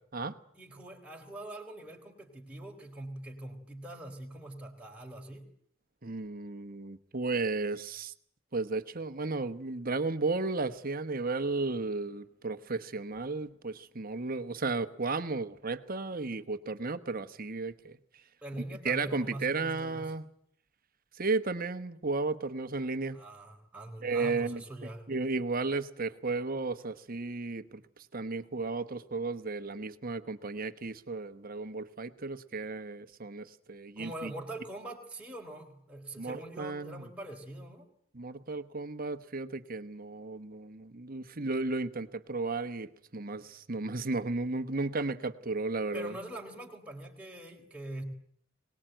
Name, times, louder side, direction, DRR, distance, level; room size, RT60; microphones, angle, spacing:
voice 1, 0.5-5.4 18.4-20.0 23.1-25.0 34.0-37.9 45.9-48.0, right 1 dB, 5° right, -1 dB, 4.0 m, -43 dB
voice 2, 6.0-8.1 8.5-18.0 18.8-20.2 21.1-23.2 24.0-24.6 25.1-27.8 28.1-34.3 36.2-37.0 38.1-46.2, right 3 dB, 40° right, 11 dB, 1.2 m, -34 dB
22.5 x 19.5 x 9.1 m, 0.65 s
head